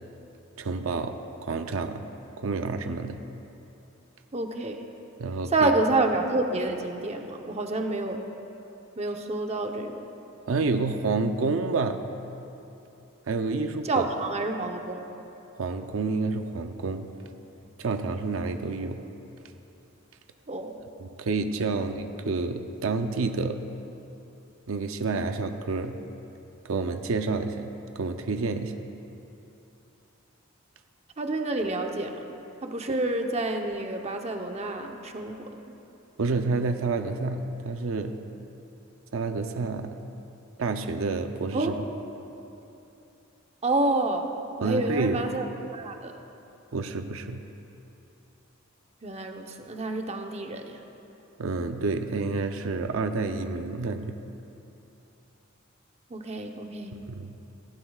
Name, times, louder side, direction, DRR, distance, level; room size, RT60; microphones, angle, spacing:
voice 1, 0.6-2.1 2.4-3.2 5.2-5.7 10.5-12.1 13.3-14.1 15.5-17.1 17.8-19.1 21.0-23.6 24.7-26.0 26.6-28.8 32.9-33.0 36.2-38.2 39.1-40.1 40.6-41.8 44.6-45.2 46.7-47.5 51.4-54.2 57.1-57.3, right 3 dB, 75° right, 7 dB, 0.6 m, -29 dB
voice 2, 4.3-4.8 5.5-8.3 9.0-10.0 13.8-15.0 20.5-20.8 21.7-21.8 31.2-32.2 32.6-35.5 41.5-41.7 43.6-44.3 44.6-45.5 45.7-46.1 49.0-50.8 56.1-57.0, right 2 dB, 30° right, 3 dB, 0.9 m, -28 dB
19.5 x 15.5 x 2.4 m, 2.9 s
head